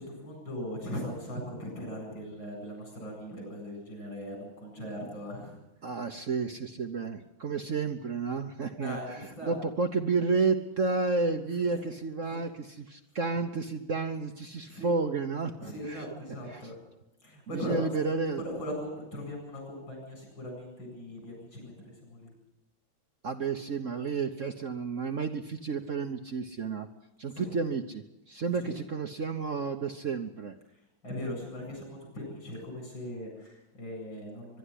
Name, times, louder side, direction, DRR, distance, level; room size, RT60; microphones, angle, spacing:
voice 1, 0.0-5.6 8.8-9.6 11.6-11.7 12.3-12.4 13.2-13.3 14.6-14.9 15.6-16.8 17.2-17.9 18.4-22.3 27.3-27.5 28.6-28.7 31.0-34.6, left 1 dB, 70° left, 1 dB, 8.8 m, -39 dB
voice 2, 5.8-16.1 16.5-16.6 17.5-18.4 23.2-26.9 27.2-30.6, right 4 dB, 50° right, 6 dB, 1.1 m, -31 dB
23.0 x 11.5 x 10.0 m, 0.93 s
omnidirectional pair, 2.1 m